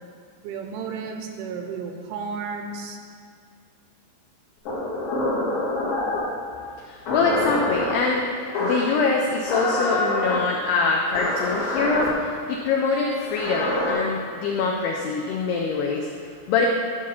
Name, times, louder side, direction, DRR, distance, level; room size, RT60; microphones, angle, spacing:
voice 1, 0.4-3.0, right 5 dB, 85° right, 4 dB, 3.0 m, -33 dB
sound 1, 4.6-6.3 7.0-7.9 8.5-9.0 9.4-10.4 11.1-12.1 13.2-13.9, left 2 dB, 65° left, 1.4 m, -26 dB
voice 2, 6.8-16.7, left 4 dB, 85° left, 0 dB, 2.3 m, -24 dB
12.0 x 4.7 x 5.7 m, 2.1 s
omnidirectional pair, 5.5 m